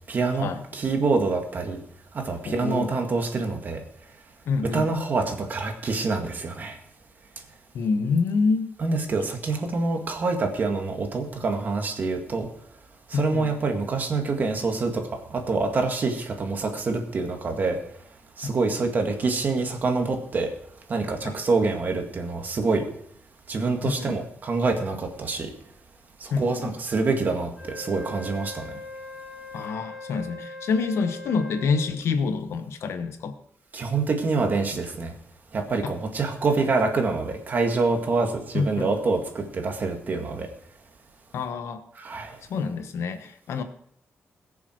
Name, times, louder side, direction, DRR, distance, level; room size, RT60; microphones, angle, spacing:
voice 1, 0.1-1.8 2.1-3.8 4.6-6.8 8.8-12.5 13.1-17.8 18.4-20.5 20.9-22.9 23.5-25.5 26.2-28.7 33.7-35.2 35.5-40.5 42.0-42.4, right 3 dB, 40° right, 4 dB, 2.0 m, -26 dB
voice 2, 2.5-2.9 4.5-4.9 7.7-8.8 13.1-13.5 21.2-21.3 23.8-24.2 26.3-26.7 29.5-33.4 38.5-38.9 41.3-41.8 42.5-43.6, left 4 dB, 85° left, 9 dB, 1.2 m, -27 dB
Wind instrument woodwind instrument, 27.5-31.9, left 2 dB, 15° left, 3.4 m, -40 dB
21.0 x 7.1 x 4.5 m, 0.68 s
wide cardioid pair, 150°, 4 cm